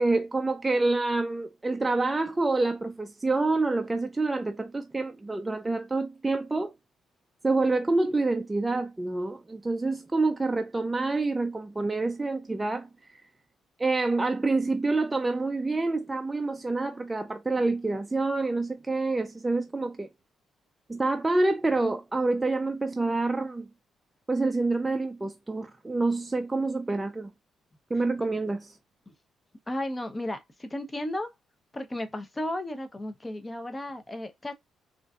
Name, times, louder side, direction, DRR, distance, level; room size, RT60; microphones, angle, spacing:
voice 1, 0.0-6.7 7.4-12.9 13.8-20.1 20.9-23.7 24.3-27.3 27.9-28.7, right 3 dB, 15° right, 0.4 m, -27 dB
voice 2, 29.7-31.3 31.7-34.5, left 1 dB, 20° left, 0.7 m, -34 dB
3.8 x 2.5 x 2.3 m
cardioid pair, 90°, 0 cm